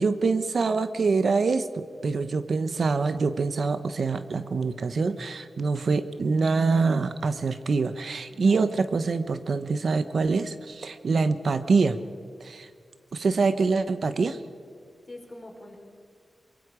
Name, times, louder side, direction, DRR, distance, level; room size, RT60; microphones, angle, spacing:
voice 1, 0.0-12.0 12.4-12.7 13.1-14.4, right 4 dB, 70° right, 11 dB, 0.9 m, -25 dB
voice 2, 4.3-5.2 5.5-5.6 8.3-8.6 13.3-13.4 15.1-15.8, left 2 dB, 35° left, 1 dB, 4.5 m, -46 dB
24.5 x 22.5 x 5.0 m, 2.1 s
wide cardioid pair, 100°, 0 cm